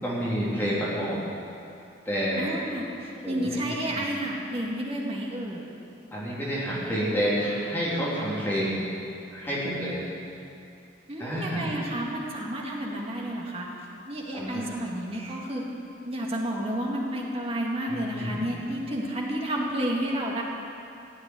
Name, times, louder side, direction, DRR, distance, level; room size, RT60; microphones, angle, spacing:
voice 1, 0.0-1.2 2.0-2.4 3.2-3.6 4.0-4.1 6.1-8.8 9.3-10.0 11.2-11.7 14.3-14.7 17.9-18.4, equal, 10° left, -8 dB, 3.3 m, -29 dB
voice 2, 2.4-5.6 11.1-13.7 14.1-15.6 16.0-20.4, right 1 dB, 30° right, -2 dB, 2.2 m, -31 dB
16.0 x 7.9 x 9.6 m, 2.6 s
head